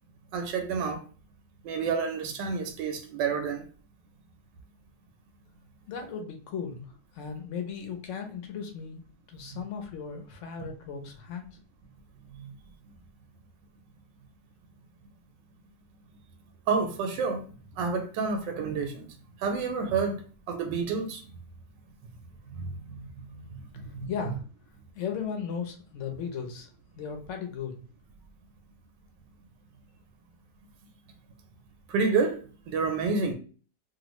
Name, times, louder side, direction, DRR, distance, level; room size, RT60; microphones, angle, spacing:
voice 1, 0.3-1.0 1.6-3.6 9.5-9.6 12.3-12.5 16.7-17.4 17.8-19.1 19.4-20.2 20.5-21.2 22.6-24.1 31.9-33.3, right 5 dB, 90° right, 1.2 m, -29 dB
voice 2, 5.9-6.9 7.1-9.0 9.3-11.5 24.1-24.4 25.0-26.7 27.0-27.7, left 6 dB, 60° left, 0.8 m, -36 dB
3.1 x 2.3 x 3.0 m
omnidirectional pair, 1.9 m